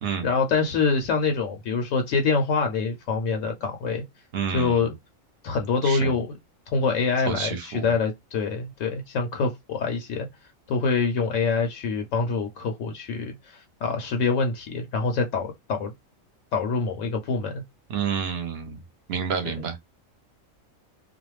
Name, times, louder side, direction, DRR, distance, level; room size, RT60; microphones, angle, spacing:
voice 1, 0.2-4.0 4.5-4.9 5.4-6.4 6.7-10.3 10.7-15.9 16.5-17.6 19.4-19.6, left 4 dB, 75° left, 0.9 m, -25 dB
voice 2, 4.3-4.9 5.8-6.1 7.3-7.9 17.9-18.8 19.1-19.8, right 7 dB, 60° right, 0.8 m, -29 dB
2.4 x 2.1 x 3.0 m
omnidirectional pair, 1.4 m